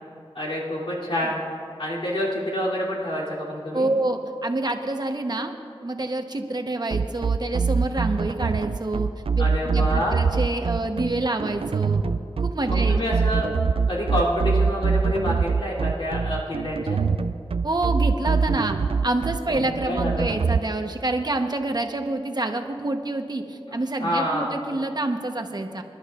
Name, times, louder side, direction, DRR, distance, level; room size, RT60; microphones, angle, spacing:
voice 1, 0.3-1.4 1.8-3.9 9.4-10.2 12.7-13.5 13.9-17.0 19.5-20.3 23.7-24.5, equal, 70° left, -7 dB, 3.0 m, -27 dB
voice 2, 3.7-5.5 5.8-9.1 9.3-12.0 12.4-13.0 17.6-18.8 19.0-25.8, right 2 dB, 45° right, 5 dB, 1.0 m, -27 dB
sound 1, 6.9-20.6, right 5 dB, 70° right, 0.4 m, -23 dB
26.5 x 11.5 x 2.5 m, 2.7 s
wide cardioid pair, 70°, 10 cm